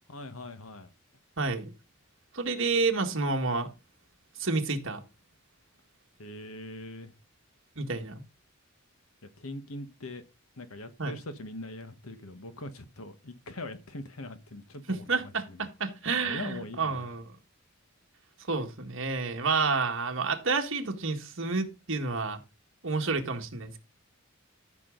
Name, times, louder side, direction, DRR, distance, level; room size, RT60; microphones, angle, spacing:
voice 1, 0.1-0.9 6.2-7.1 9.4-10.2 10.6-15.7 16.2-17.1, left 1 dB, 85° left, 1.4 m, -42 dB
voice 2, 1.4-1.7 2.3-3.7 4.4-5.0 7.8-8.2 11.0-11.1 14.9-17.2 18.5-22.4 22.8-23.8, right 4 dB, 65° right, 1.8 m, -29 dB
13.5 x 6.2 x 3.9 m
head